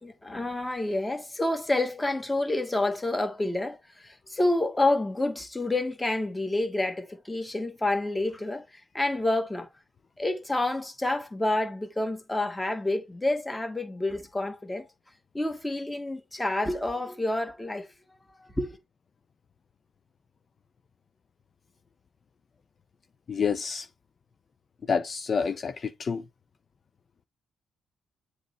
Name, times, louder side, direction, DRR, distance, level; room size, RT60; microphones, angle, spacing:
voice 1, 0.0-9.7 10.2-14.9 15.3-18.8, left 2 dB, 15° left, 1.7 m, -29 dB
voice 2, 23.3-23.9 24.9-26.3, left 6 dB, 45° left, 0.6 m, -28 dB
7.7 x 3.2 x 4.0 m
cardioid pair, 90°, 0 cm